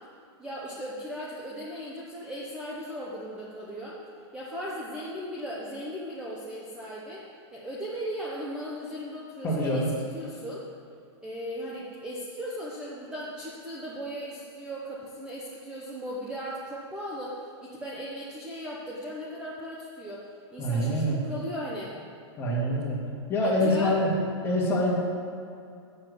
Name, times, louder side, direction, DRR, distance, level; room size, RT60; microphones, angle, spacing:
voice 1, 0.4-4.0 4.3-7.2 7.5-9.8 10.1-10.6 11.2-20.2 20.5-21.9 23.4-24.0, equal, 5° right, -6 dB, 0.9 m, -37 dB
voice 2, 9.4-9.9 20.6-21.2 22.4-23.0 23.3-24.1 24.4-25.0, equal, 15° left, -4 dB, 2.1 m, -25 dB
7.5 x 7.1 x 8.2 m, 2.5 s
hypercardioid pair, 155°, 15 cm